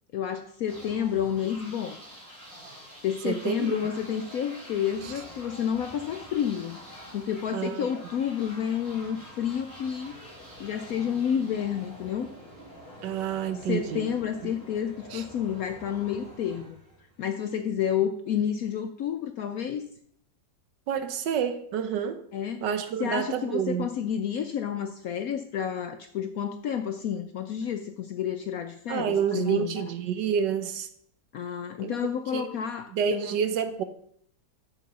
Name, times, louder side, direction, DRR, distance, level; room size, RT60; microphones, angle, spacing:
voice 1, 0.1-2.0 3.0-6.8 7.1-10.1 10.6-12.3 13.7-16.8 17.2-19.8 22.3-22.6 23.0-29.8 31.3-33.3, left 8 dB, 70° left, 0.8 m, -30 dB
sound 1, 0.7-17.4, equal, 30° right, 3.9 m, -46 dB
voice 2, 3.2-3.8 5.0-5.1 7.5-7.9 13.0-14.1 14.4-14.5 15.1-15.2 20.9-22.2 22.6-23.9 28.9-30.9 31.8-31.9 32.3-32.5 32.9-33.8, right 7 dB, 75° right, 1.4 m, -28 dB
7.1 x 6.0 x 6.8 m
omnidirectional pair, 2.0 m